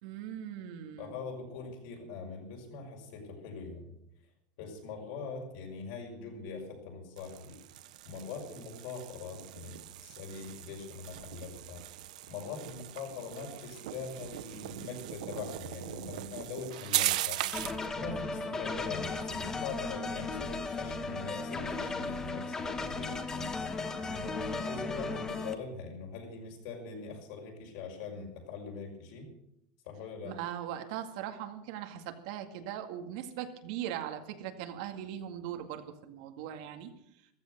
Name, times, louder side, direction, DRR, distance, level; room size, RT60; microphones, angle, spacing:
voice 1, 0.0-1.2 30.2-36.9, right 10 dB, 60° right, 6 dB, 2.1 m, -40 dB
voice 2, 1.0-4.0 4.6-7.6 8.0-11.8 12.3-17.5 17.9-23.7 24.0-29.3 29.8-30.4, left 4 dB, 60° left, 1 dB, 6.0 m, -42 dB
sound 1, 7.2-17.9, right 15 dB, 80° right, 0.9 m, -38 dB
sound 2, 17.5-25.5, left 3 dB, 15° left, 1.2 m, -36 dB
14.5 x 14.0 x 6.7 m, 0.77 s
supercardioid pair, 160°, 4 cm